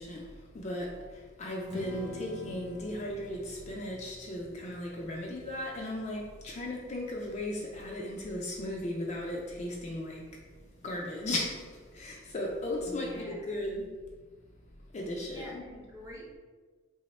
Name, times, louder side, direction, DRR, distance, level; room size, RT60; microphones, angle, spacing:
voice 1, 0.0-10.3 10.8-13.9 14.9-15.6, left 1 dB, 30° left, -1 dB, 0.3 m, -36 dB
Strum, 1.7-8.0, left 3 dB, 50° right, 0.8 m, -48 dB
voice 2, 12.9-13.5 15.3-16.4, equal, 15° right, -4 dB, 0.6 m, -46 dB
3.0 x 2.1 x 4.0 m, 1.4 s
head